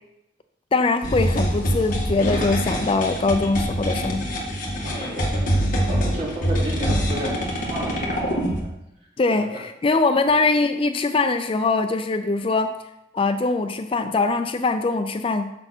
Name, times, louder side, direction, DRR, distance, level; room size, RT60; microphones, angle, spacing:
voice 1, 0.7-4.2 9.2-12.7 13.1-15.5, left 3 dB, 30° left, 8 dB, 0.4 m, -22 dB
sound 1, 1.0-8.6, equal, 45° left, 2.0 m, -24 dB
voice 2, 4.8-8.5 9.3-9.6, equal, 35° right, -6 dB, 3.4 m, -32 dB
9.8 x 6.9 x 4.4 m, 0.87 s
head